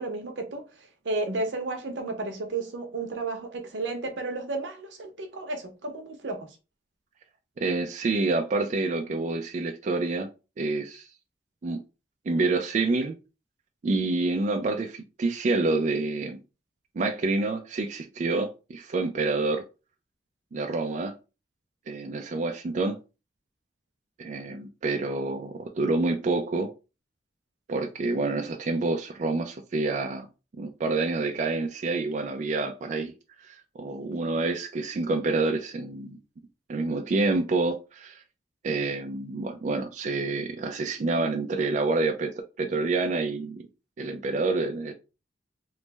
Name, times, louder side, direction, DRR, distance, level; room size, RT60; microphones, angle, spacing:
voice 1, 0.0-6.5, right 3 dB, 85° right, 0.7 m, -33 dB
voice 2, 7.6-10.3 10.6-11.1 11.6-11.8 12.3-13.1 13.8-16.4 17.0-19.6 20.5-21.1 21.9-23.0 24.2-26.7 27.7-30.3 30.6-33.1 33.4-36.2 36.7-38.2 38.6-42.3 42.6-43.7 44.0-44.9, right 3 dB, 40° right, 0.3 m, -27 dB
3.1 x 2.0 x 3.2 m
head